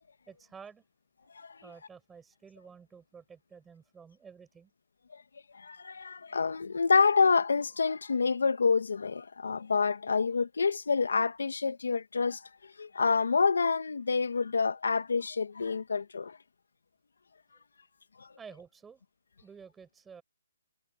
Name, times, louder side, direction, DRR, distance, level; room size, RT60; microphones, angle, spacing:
voice 1, 0.3-0.8 1.6-4.7 18.4-19.0 19.4-20.2, right 6 dB, 10° right, 5.8 m, -51 dB
voice 2, 5.5-12.4 12.8-16.4 18.2-18.3, left 5 dB, 80° left, 1.8 m, -27 dB
hypercardioid pair, 160°, 0 cm